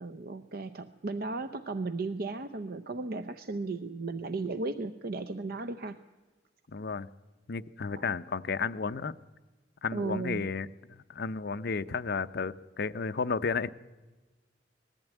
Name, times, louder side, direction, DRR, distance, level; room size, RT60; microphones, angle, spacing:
voice 1, 0.0-6.0 7.9-8.1 9.9-10.5, right 3 dB, 55° right, 11 dB, 0.7 m, -35 dB
voice 2, 6.7-7.1 7.5-9.2 9.8-13.7, left 5 dB, 60° left, 13 dB, 0.6 m, -33 dB
20.5 x 14.5 x 9.1 m, 1.2 s
head